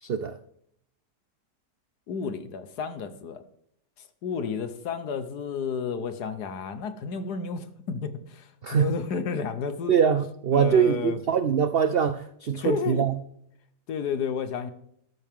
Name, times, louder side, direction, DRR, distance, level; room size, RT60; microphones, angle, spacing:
voice 1, 0.0-0.4 8.6-8.9 9.9-13.2, right 7 dB, 85° right, 10 dB, 0.5 m, -23 dB
voice 2, 2.1-3.4 4.2-9.9 10.5-11.2 12.5-13.1 13.9-14.7, left 6 dB, 70° left, 11 dB, 1.6 m, -31 dB
14.0 x 12.5 x 3.7 m, 0.71 s
omnidirectional pair, 1.8 m